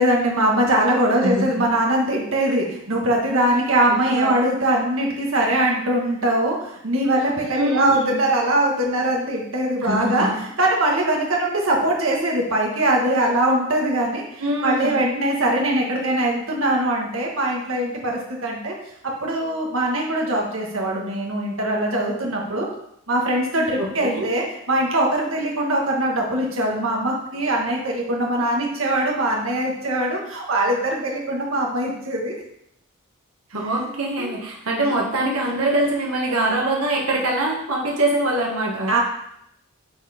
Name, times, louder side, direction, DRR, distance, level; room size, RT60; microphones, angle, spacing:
voice 1, 0.0-18.7 19.0-22.7 23.1-32.4 34.2-34.3 34.9-35.3 38.9-39.0, right 1 dB, 65° right, -1 dB, 1.6 m, -22 dB
voice 2, 3.9-4.3 7.5-8.2 9.8-10.3 14.4-15.0 23.8-24.3 33.5-38.9, right 1 dB, 85° right, -1 dB, 1.6 m, -23 dB
10.5 x 4.3 x 4.3 m, 0.75 s
head